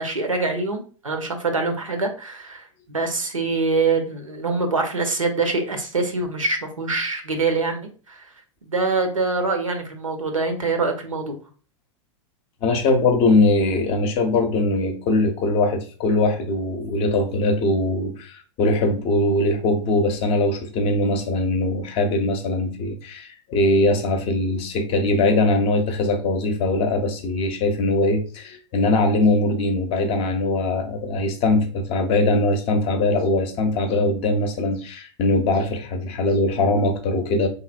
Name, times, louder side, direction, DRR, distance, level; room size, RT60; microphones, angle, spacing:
voice 1, 0.0-7.8 8.1-8.2 8.6-11.4, right 3 dB, 85° right, 6 dB, 0.6 m, -24 dB
voice 2, 12.6-37.5, left 2 dB, 35° left, 5 dB, 0.5 m, -21 dB
3.0 x 2.6 x 2.3 m, 0.38 s
figure-of-eight pair, 90°, 16 cm